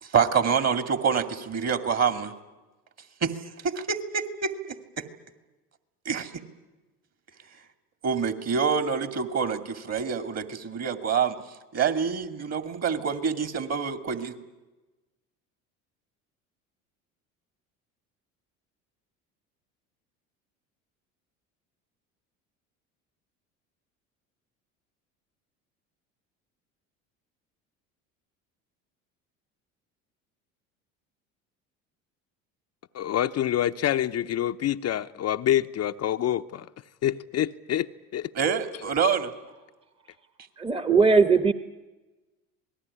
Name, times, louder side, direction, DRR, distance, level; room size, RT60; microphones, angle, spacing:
voice 1, 0.0-2.3 3.2-3.4 3.6-5.1 6.1-6.4 8.0-11.4 11.7-14.3 38.3-39.3, right 6 dB, 40° right, 2.5 m, -26 dB
voice 2, 32.9-36.7 37.0-37.9 38.1-38.3, left 11 dB, 40° left, 0.8 m, -26 dB
voice 3, 40.6-41.5, right 5 dB, 15° right, 1.2 m, -19 dB
26.5 x 19.5 x 10.0 m
hypercardioid pair, 70°, 40 cm